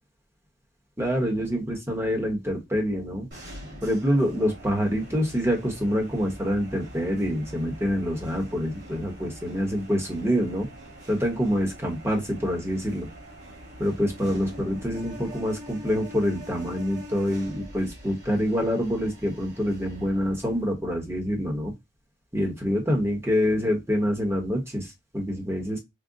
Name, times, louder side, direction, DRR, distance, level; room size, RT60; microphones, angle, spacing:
voice 1, 1.0-3.3 3.8-10.7 11.1-13.1 13.8-21.7 22.3-25.8, equal, 15° right, 1 dB, 1.0 m, -26 dB
sound 1, 3.3-20.7, equal, 60° right, 1.8 m, -44 dB
3.7 x 2.1 x 3.8 m, 0.21 s
head